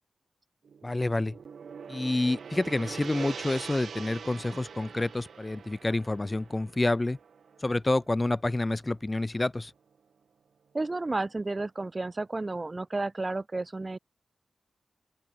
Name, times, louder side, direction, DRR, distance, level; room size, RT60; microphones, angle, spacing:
Gong, 0.6-9.0, right 6 dB, 90° right, 4.7 m, -44 dB
voice 1, 0.8-1.3 1.9-7.2 7.6-9.7, left 2 dB, 20° left, 2.8 m, -28 dB
voice 2, 10.7-14.0, right 2 dB, 25° right, 3.6 m, -32 dB
open air
wide cardioid pair, 155°, 0 cm